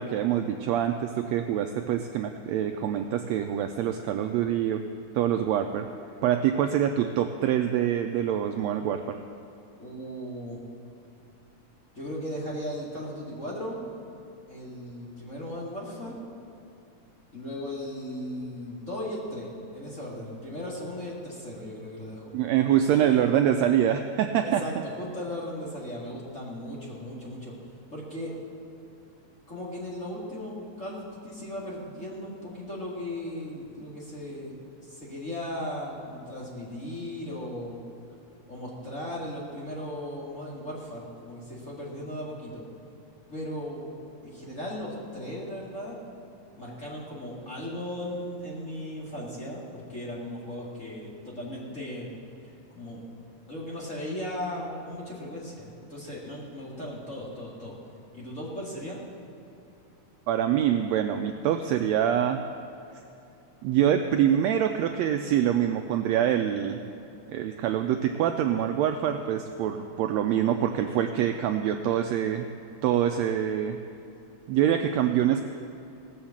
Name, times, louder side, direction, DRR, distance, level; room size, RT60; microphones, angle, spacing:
voice 1, 0.0-4.8 5.1-5.9 6.2-9.2 22.3-24.6 60.3-62.4 63.6-66.8 67.3-72.5 72.8-73.8 74.5-75.4, right 10 dB, 80° right, 6 dB, 1.6 m, -25 dB
voice 2, 9.8-10.6 12.0-13.8 14.5-16.2 17.3-22.3 22.7-23.3 24.4-27.5 27.9-28.3 29.5-34.6 34.8-37.8 38.5-42.6 43.3-43.9 44.2-46.0 46.6-52.1 52.7-53.0 53.5-57.7 58.1-59.0, left 1 dB, 25° left, -5 dB, 2.1 m, -37 dB
17.5 x 6.5 x 7.2 m, 2.7 s
omnidirectional pair, 3.5 m